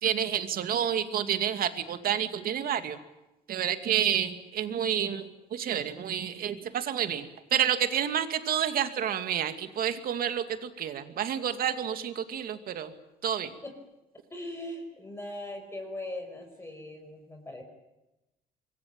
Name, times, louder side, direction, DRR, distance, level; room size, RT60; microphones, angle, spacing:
voice 1, 0.0-3.0 3.5-12.9 13.2-13.5, right 9 dB, 60° right, 9 dB, 2.5 m, -29 dB
voice 2, 14.3-17.6, left 1 dB, 15° left, 4 dB, 5.6 m, -40 dB
26.0 x 22.5 x 8.9 m, 0.98 s
cardioid pair, 110°, 17 cm